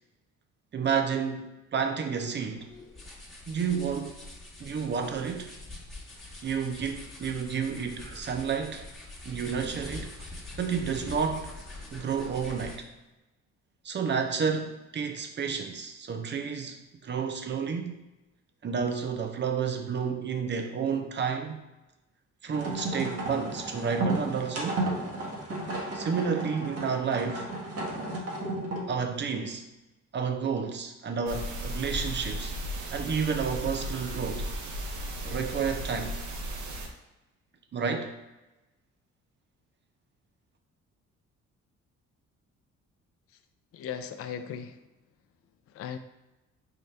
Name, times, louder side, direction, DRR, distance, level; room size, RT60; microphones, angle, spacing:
voice 1, 0.7-2.7 3.5-4.2 4.6-5.5 6.4-8.8 9.2-10.3 10.6-11.5 11.9-12.8 13.8-18.0 18.6-21.6 22.4-24.8 25.9-27.5 28.9-29.6 30.1-32.5 32.9-34.5 35.2-36.2 37.7-38.1, right 6 dB, 35° right, 5 dB, 0.7 m, -30 dB
sound 1, 2.6-13.0, left 2 dB, ahead, 1.4 m, -44 dB
sound 2, 22.5-29.0, right 2 dB, 50° right, 1.2 m, -33 dB
sound 3, 31.3-36.9, equal, 75° right, 0.8 m, -35 dB
voice 2, 43.7-44.8 45.7-46.0, left 8 dB, 50° left, 8 dB, 0.4 m, -37 dB
5.7 x 2.5 x 3.3 m, 1.0 s
cardioid pair, 90°, 30 cm